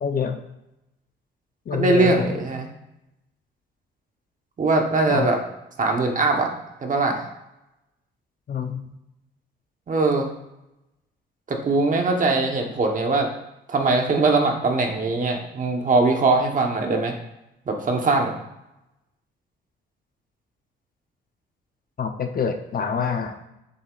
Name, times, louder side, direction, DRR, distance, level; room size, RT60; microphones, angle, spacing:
voice 1, 0.0-0.4 1.7-2.4 5.1-5.3 8.5-8.8 22.0-23.5, left 6 dB, 45° left, 6 dB, 0.8 m, -26 dB
voice 2, 1.7-2.7 4.6-5.4 5.8-6.5 6.8-7.2 9.9-10.3 11.5-13.3 13.7-17.1 17.7-18.3, right 3 dB, 40° right, 2 dB, 1.2 m, -21 dB
7.9 x 7.1 x 2.5 m, 0.90 s
cardioid pair, 90°, 20 cm